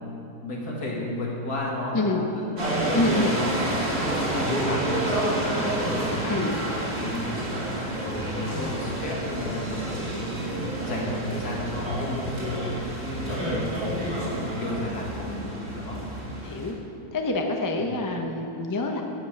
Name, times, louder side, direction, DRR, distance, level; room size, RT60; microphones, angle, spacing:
voice 1, 0.4-3.1 4.0-7.5 8.0-12.7 13.0-15.4 15.7-16.0, left 1 dB, 70° left, -3 dB, 2.3 m, -32 dB
sound 1, 2.6-16.7, right 1 dB, 40° right, 2.0 m, -29 dB
voice 2, 2.9-3.4 6.3-6.6 8.5-9.0 13.4-13.6 16.4-16.7 17.1-19.0, left 2 dB, 30° left, 2 dB, 0.3 m, -27 dB
12.0 x 5.6 x 6.6 m, 2.7 s
omnidirectional pair, 1.7 m